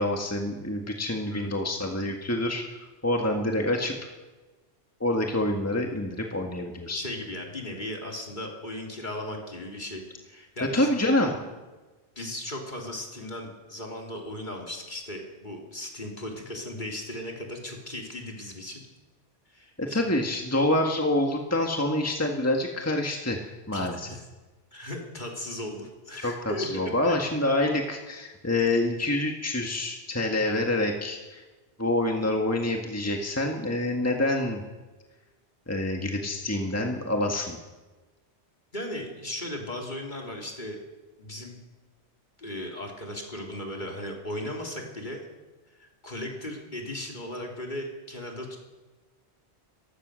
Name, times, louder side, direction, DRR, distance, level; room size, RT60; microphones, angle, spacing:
voice 1, 0.0-2.6 3.0-4.0 5.0-7.0 10.7-11.4 19.8-24.1 26.2-31.4 31.8-34.6 35.7-37.6, left 1 dB, 15° left, 2 dB, 1.7 m, -27 dB
voice 2, 6.9-10.9 12.2-18.8 19.5-20.1 23.7-24.2 24.7-26.7 27.0-27.1 38.7-40.8 41.2-41.6 42.4-45.2 45.8-48.6, left 1 dB, 45° left, 0 dB, 3.6 m, -37 dB
28.0 x 15.5 x 6.4 m, 1.2 s
omnidirectional pair, 1.1 m